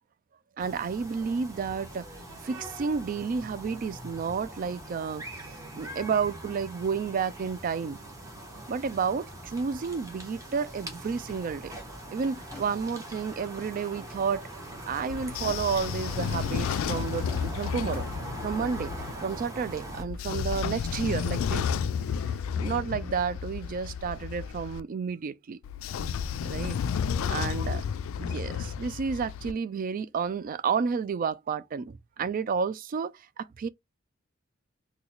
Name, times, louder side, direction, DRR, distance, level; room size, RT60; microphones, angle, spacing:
sound 1, 0.6-20.0, right 1 dB, 15° right, 1.1 m, -42 dB
voice 1, 0.6-2.1 2.4-5.4 5.8-8.0 8.7-11.7 12.1-14.5 14.9-18.1 18.4-21.7 22.2-25.6 26.4-26.8 27.3-27.8 28.2-33.7, right 6 dB, 45° right, 0.3 m, -31 dB
Drawer open or close, 11.3-13.4 14.1-16.2 16.5-17.3 17.6-18.5 18.9-21.4, left 2 dB, 5° left, 1.4 m, -52 dB
Train / Sliding door, 15.1-19.1 19.9-24.8 25.6-29.5, left 7 dB, 80° left, 0.3 m, -32 dB
3.9 x 2.2 x 2.9 m
head